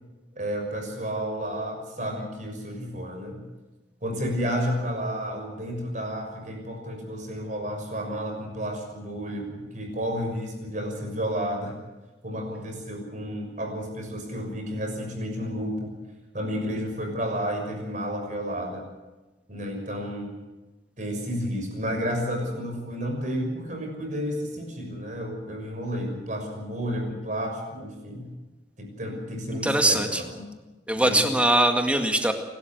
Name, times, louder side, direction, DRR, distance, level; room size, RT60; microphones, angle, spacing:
voice 1, 0.3-3.4 4.0-11.7 12.2-15.9 16.3-18.9 19.5-20.3 21.0-28.3 28.8-30.5 30.9-31.2, equal, 45° right, 3 dB, 6.3 m, -31 dB
voice 2, 29.6-30.2 30.9-32.3, right 1 dB, 5° right, 5 dB, 2.0 m, -21 dB
28.0 x 13.0 x 8.0 m, 1.2 s
head